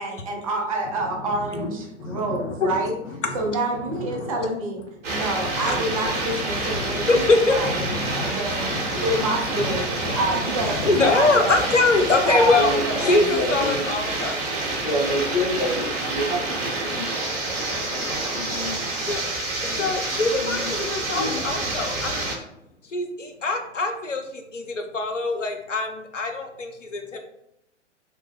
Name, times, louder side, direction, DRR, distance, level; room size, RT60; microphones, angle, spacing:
voice 1, 0.0-3.0 3.3-4.8 5.1-8.7 9.0-11.6 12.3-13.2, right 2 dB, 30° right, 1 dB, 0.5 m, -28 dB
voice 2, 2.0-2.7 3.2-3.4 4.1-4.3 5.6-5.8 6.3-9.3 9.6-10.2 10.7-14.5 19.1-19.2 19.6-22.5 22.8-27.2, left 3 dB, 85° left, 5 dB, 0.6 m, -24 dB
sound 1, 5.0-22.4, right 2 dB, 50° right, 0.9 m, -28 dB
voice 3, 12.5-13.8 14.8-17.1 17.7-18.8 19.6-20.7 21.0-21.4, left 1 dB, 40° left, -2 dB, 0.6 m, -29 dB
2.8 x 2.0 x 3.4 m, 0.80 s
figure-of-eight pair, 110°, 36 cm